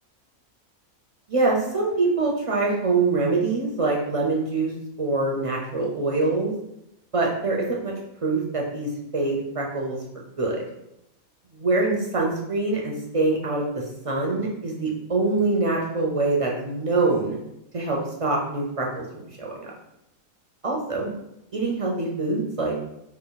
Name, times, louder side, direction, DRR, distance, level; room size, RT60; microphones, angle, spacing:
voice 1, 1.3-4.7 5.0-6.5 7.1-7.9 8.2-10.0 10.4-10.6 11.5-17.4 17.7-19.1 19.4-19.7 20.6-21.1 21.5-22.8, right 3 dB, 50° right, -2 dB, 0.4 m, -24 dB
4.3 x 2.2 x 3.9 m, 0.83 s
omnidirectional pair, 1.5 m